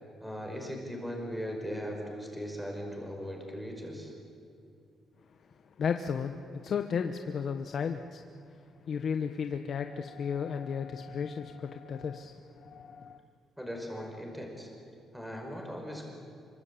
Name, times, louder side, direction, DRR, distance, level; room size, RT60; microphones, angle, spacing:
voice 1, 0.2-4.1 13.6-14.7 15.1-16.1, equal, ahead, 1 dB, 5.3 m, -38 dB
voice 2, 5.8-6.4 6.6-8.2 8.9-13.2, left 6 dB, 50° left, 6 dB, 1.1 m, -34 dB
27.5 x 24.5 x 8.6 m, 2.6 s
cardioid pair, 140°, 0 cm